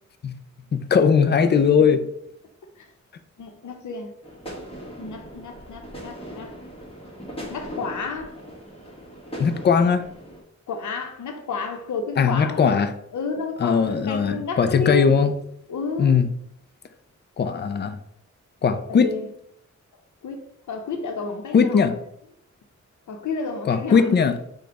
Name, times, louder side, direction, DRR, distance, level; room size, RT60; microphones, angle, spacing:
voice 1, 0.7-2.1 9.4-10.0 12.2-12.9 13.6-15.3 16.0-16.3 17.4-18.0 18.6-19.1 21.5-21.9 23.7-24.4, left 6 dB, 35° left, 0.4 m, -19 dB
voice 2, 3.4-4.1 5.0-6.5 7.5-8.4 10.7-12.8 13.1-15.1 15.7-16.1 18.9-19.3 20.2-20.4 20.7-22.0 23.1-24.4, left 4 dB, 85° left, 0.8 m, -31 dB
sound 1, 4.2-10.4, equal, 20° left, 1.1 m, -39 dB
5.0 x 2.3 x 4.6 m
wide cardioid pair, 150°, 29 cm